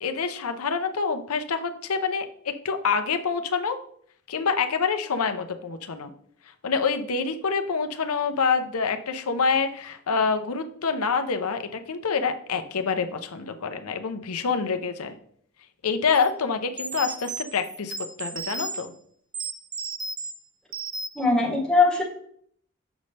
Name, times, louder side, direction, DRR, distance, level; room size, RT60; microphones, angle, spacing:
voice 1, 0.0-3.8 4.3-6.1 6.6-15.2 15.8-18.9, left 5 dB, 90° left, 7 dB, 0.7 m, -26 dB
sound 1, 16.1-16.3 16.8-18.9 19.3-20.3 20.7-21.3, right 3 dB, 20° right, 0.3 m, -34 dB
voice 2, 21.2-22.0, left 3 dB, 5° left, -2 dB, 1.3 m, -20 dB
7.1 x 5.3 x 3.3 m, 0.62 s
head